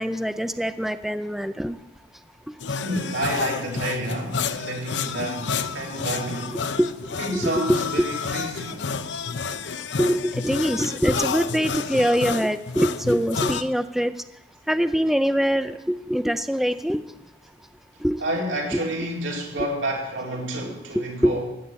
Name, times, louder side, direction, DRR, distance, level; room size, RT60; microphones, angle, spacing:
voice 1, 0.0-1.8 6.8-6.9 7.3-7.8 10.0-14.1 14.7-17.0 18.0-18.2 20.7-21.3, equal, ahead, 0.4 m, -23 dB
sound 1, 2.6-13.6, left 5 dB, 65° left, 0.7 m, -30 dB
voice 2, 2.8-6.5 7.2-8.9 18.2-21.5, right 1 dB, 85° right, 4.1 m, -29 dB
16.0 x 8.6 x 8.3 m
head